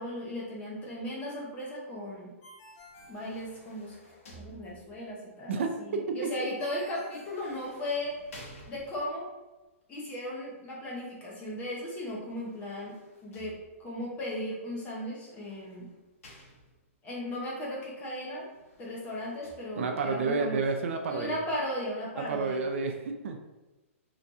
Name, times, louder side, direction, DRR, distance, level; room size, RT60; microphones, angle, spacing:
voice 1, 0.0-2.3 3.1-4.0 4.3-8.2 8.7-9.3 9.9-15.9 17.0-18.5 18.8-20.6 21.1-22.6, left 1 dB, 20° left, -4 dB, 0.9 m, -36 dB
Ringtone, 2.4-4.0 6.6-8.2, equal, 50° left, 0.8 m, -53 dB
sound 1, 2.7-5.2 7.0-9.3 12.2-14.0 15.0-17.0 18.4-19.6, equal, 80° left, 1.0 m, -54 dB
voice 2, 5.5-6.5 19.8-21.4 22.2-23.4, right 4 dB, 60° right, 4 dB, 0.5 m, -30 dB
3.3 x 3.0 x 2.6 m, 1.1 s
hypercardioid pair, 155°, 8 cm